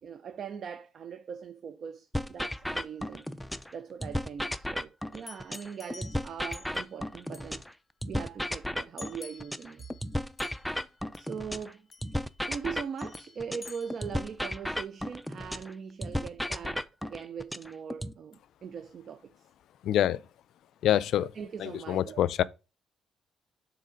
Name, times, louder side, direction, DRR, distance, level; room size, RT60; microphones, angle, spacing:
voice 1, 0.0-3.3 3.7-7.6 8.1-9.8 11.1-11.8 12.5-19.3 21.4-22.2, right 7 dB, 55° right, 0.5 m, -41 dB
sound 1, 2.1-3.7 4.0-7.7 8.0-11.7 12.0-15.7 16.0-18.1, equal, 5° left, 0.5 m, -34 dB
sound 2, 5.1-7.0 7.3-7.6 9.0-10.1 10.4-10.9 11.1-11.4 11.9-12.4 13.0-14.3, left 4 dB, 35° left, 1.1 m, -50 dB
voice 2, 19.8-20.2 20.8-21.3 21.6-22.4, left 11 dB, 75° left, 0.4 m, -26 dB
6.6 x 3.9 x 5.0 m
cardioid pair, 90°, 0 cm